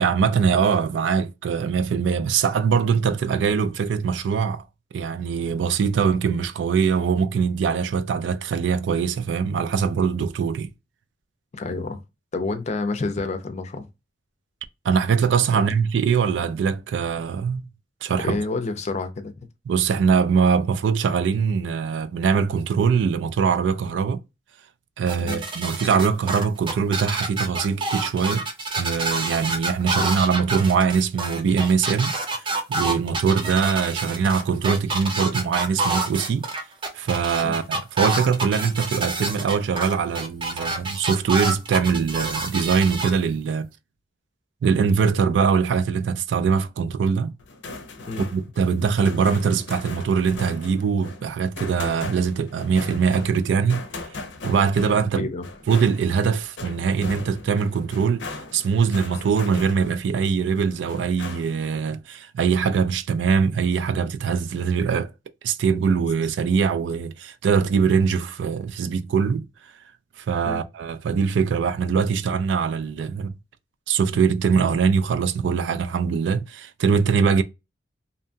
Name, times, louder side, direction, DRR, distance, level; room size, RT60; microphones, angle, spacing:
voice 1, 0.0-4.6 4.9-10.7 14.8-17.7 18.0-18.4 19.7-24.2 25.0-28.4 28.7-32.1 32.7-36.5 36.9-43.7 44.6-47.3 48.2-53.8 54.4-55.3 55.7-58.3 58.5-65.1 65.4-69.5 70.2-73.3 73.9-77.4, right 6 dB, 80° right, 0.3 m, -22 dB
voice 2, 11.5-12.0 12.3-13.8 15.5-15.7 18.2-19.3 25.2-25.4 29.9-30.1 37.4-37.6 48.1-48.3 55.2-55.5 70.4-70.6, left 3 dB, 40° left, 0.5 m, -28 dB
sound 1, 25.1-43.1, right 3 dB, 30° right, 0.5 m, -27 dB
sound 2, 47.4-60.2 60.6-61.7, left 3 dB, 85° left, 0.5 m, -38 dB
2.7 x 2.2 x 2.6 m
head